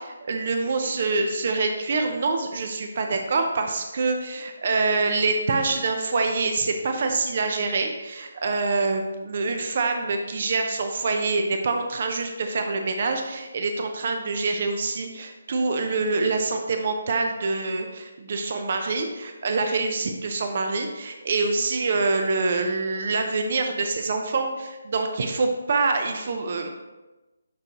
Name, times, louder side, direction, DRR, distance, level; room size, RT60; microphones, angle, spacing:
voice 1, 0.0-26.7, right 3 dB, 50° right, 5 dB, 0.7 m, -25 dB
10.5 x 3.9 x 3.0 m, 1.1 s
hypercardioid pair, 160°, 0 cm